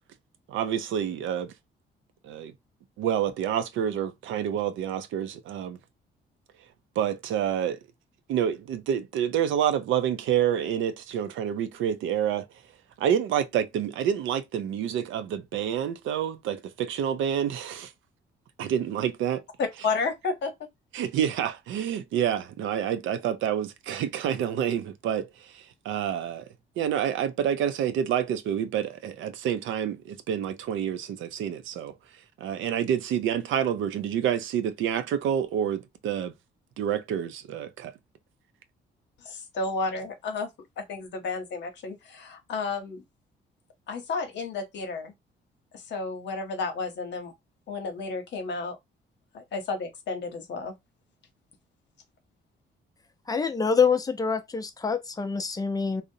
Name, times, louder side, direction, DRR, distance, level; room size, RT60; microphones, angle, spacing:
voice 1, 0.5-1.5 2.2-2.5 3.0-5.8 7.0-7.8 8.3-12.5 13.0-17.9 18.6-19.4 20.9-26.4 26.8-31.9 32.4-36.3 36.8-37.9, right 9 dB, 75° right, 0.4 m, -28 dB
voice 2, 19.6-20.5 39.2-40.5 40.8-43.0 43.9-45.1 45.7-47.3 47.7-48.8 49.3-50.7, left 4 dB, 65° left, 0.8 m, -32 dB
voice 3, 53.3-56.0, left 5 dB, 20° left, 0.5 m, -25 dB
2.5 x 2.0 x 2.7 m
cardioid pair, 90°, 20 cm